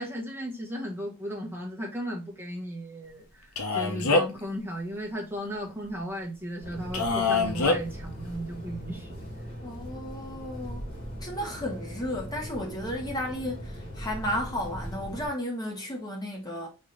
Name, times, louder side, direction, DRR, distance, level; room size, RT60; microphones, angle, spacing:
voice 1, 0.0-9.2, equal, 10° right, 1.3 m, -35 dB
Male speech man speaking, 3.6-4.4 6.9-7.8, left 3 dB, 80° left, 0.8 m, -24 dB
sound 1, 6.6-15.3, equal, 40° left, 2.1 m, -40 dB
voice 2, 9.6-10.9 11.2-16.7, left 1 dB, 20° left, 1.2 m, -33 dB
4.3 x 3.5 x 3.2 m
head